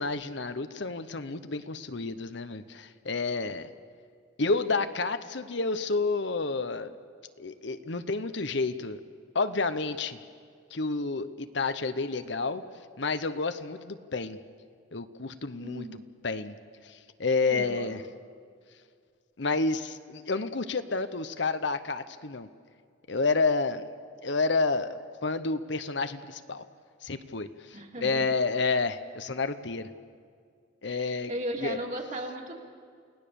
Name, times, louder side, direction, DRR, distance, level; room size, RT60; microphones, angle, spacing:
voice 1, 0.0-3.7 4.4-6.9 7.4-9.0 9.3-10.2 10.7-12.6 13.0-14.4 14.9-15.9 16.2-16.6 16.8-18.0 19.4-22.5 23.1-23.9 24.2-26.7 27.0-29.9 30.8-31.3 31.6-31.8, left 3 dB, 60° left, 10 dB, 0.9 m, -30 dB
voice 2, 15.6-16.0 17.5-17.9 27.7-28.3 30.9-31.0 31.3-32.5, right 1 dB, 35° right, 0 dB, 2.8 m, -36 dB
29.5 x 17.5 x 7.0 m, 2.1 s
head